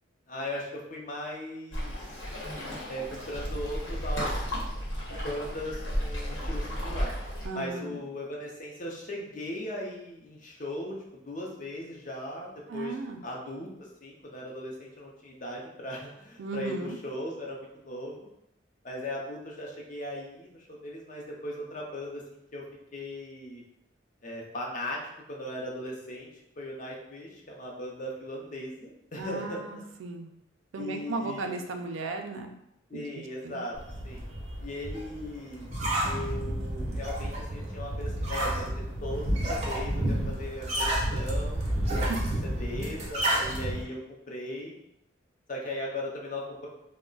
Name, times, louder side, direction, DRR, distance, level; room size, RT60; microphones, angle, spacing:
voice 1, 0.3-2.2 2.9-4.6 5.1-7.1 7.5-13.0 13.2-18.3 18.8-22.6 22.9-23.6 24.2-25.0 25.3-26.3 26.6-29.6 30.8-31.5 32.9-33.8 34.0-34.3 34.6-35.7 36.0-38.7 39.0-41.6 42.6-44.8 45.5-46.7, left 1 dB, 40° left, -2 dB, 0.6 m, -38 dB
Waves surf, 1.7-7.5, equal, 75° left, 0.9 m, -33 dB
voice 2, 7.4-8.0 12.7-13.2 16.4-17.0 29.1-30.3 30.7-32.5 32.9-33.6 42.1-42.2, right 3 dB, 85° right, 5 dB, 0.4 m, -36 dB
sound 1, 33.8-43.8, right 1 dB, 35° right, 0.6 m, -30 dB
2.3 x 2.1 x 3.7 m, 0.82 s
head